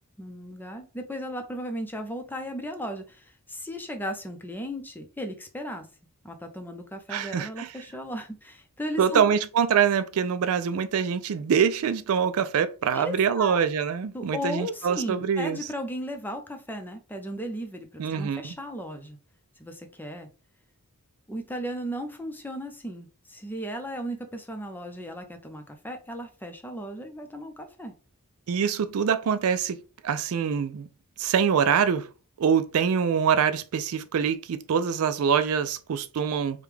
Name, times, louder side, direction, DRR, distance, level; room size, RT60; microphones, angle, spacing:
voice 1, 0.2-5.9 6.2-9.2 12.9-13.6 14.1-19.2 19.6-20.3 21.3-27.9, equal, 10° left, 0.6 m, -36 dB
voice 2, 7.1-7.7 9.0-15.6 18.0-18.5 28.5-30.9 31.2-32.1 32.4-36.6, right 7 dB, 65° right, 0.4 m, -24 dB
5.1 x 2.3 x 3.3 m
head